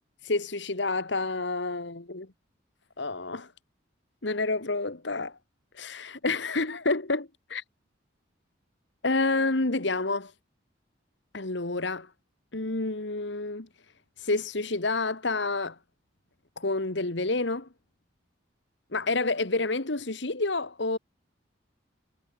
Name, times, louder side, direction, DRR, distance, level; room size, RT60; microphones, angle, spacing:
voice 1, 0.2-2.3 3.0-3.5 4.2-5.4 5.7-7.6 9.0-10.3 11.3-12.1 12.5-13.7 14.2-15.8 16.6-17.7 18.9-21.0, left 3 dB, 65° left, 1.7 m, -29 dB
head